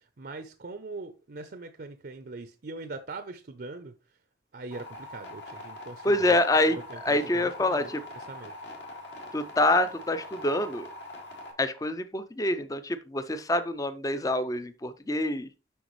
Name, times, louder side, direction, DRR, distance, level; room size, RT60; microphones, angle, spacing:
voice 1, 0.0-3.9 4.5-6.4 6.7-7.8 8.2-8.5, right 3 dB, 55° right, 0.6 m, -41 dB
sound 1, 4.7-11.5, left 1 dB, 70° left, 2.3 m, -43 dB
voice 2, 6.0-6.8 7.1-8.0 9.3-10.9 11.6-15.5, left 1 dB, 20° left, 0.4 m, -26 dB
7.9 x 5.9 x 3.1 m
head